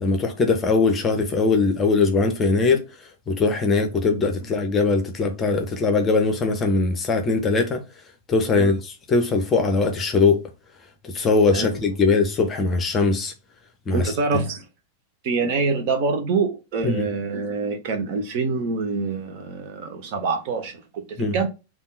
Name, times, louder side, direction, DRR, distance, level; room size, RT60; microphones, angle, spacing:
voice 1, 0.0-2.8 3.3-7.8 8.3-10.4 11.0-13.3 13.9-14.1 16.8-17.1 21.2-21.4, left 4 dB, 20° left, 0.7 m, -21 dB
voice 2, 13.9-14.7 15.2-21.5, right 4 dB, 45° right, 0.7 m, -25 dB
3.5 x 2.4 x 3.9 m
figure-of-eight pair, 90°, 0 cm